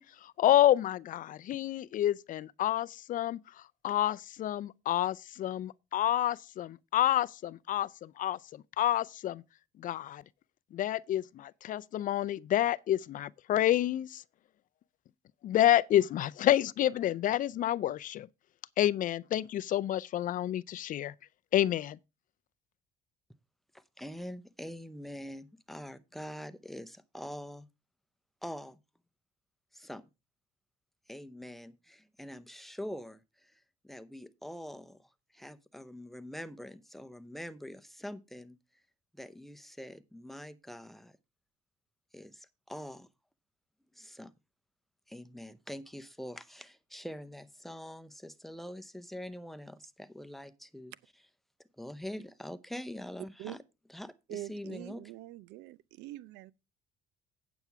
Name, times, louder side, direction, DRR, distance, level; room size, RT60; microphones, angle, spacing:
voice 1, 0.0-9.4 9.8-10.2 10.7-14.2 15.4-18.3 18.8-21.1 21.5-22.0, left 12 dB, 50° left, 0.4 m, -29 dB
voice 2, 23.7-27.7 28.4-28.8 29.7-30.0 31.1-38.6 39.1-41.2 42.1-43.1 43.9-44.3 45.1-50.9 51.8-53.6 53.9-55.0, equal, ahead, 0.7 m, -44 dB
voice 3, 54.3-56.5, right 15 dB, 90° right, 0.5 m, -44 dB
9.0 x 7.0 x 4.6 m
cardioid pair, 110°, 17 cm